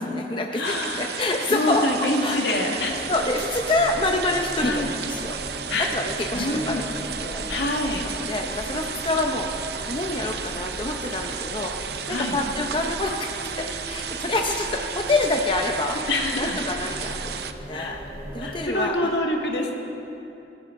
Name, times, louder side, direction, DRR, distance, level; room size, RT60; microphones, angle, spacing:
voice 1, 0.0-1.9 2.2-5.4 5.8-7.7 8.0-16.0 16.4-17.4 17.7-18.0 18.3-19.1, left 2 dB, 25° left, 2 dB, 0.7 m, -27 dB
voice 2, 0.5-1.1 1.5-3.0 4.6-4.9 5.7-5.9 6.3-6.9 7.5-8.1 9.1-9.2 12.1-12.4 16.1-16.6 17.7-18.0 18.4-19.7, left 2 dB, 75° left, 1 dB, 1.8 m, -26 dB
sound 1, 0.6-17.5, right 7 dB, 60° right, 0.6 m, -34 dB
sound 2, 2.8-18.7, right 1 dB, 20° right, 3.0 m, -39 dB
20.5 x 14.0 x 3.8 m, 2.9 s
head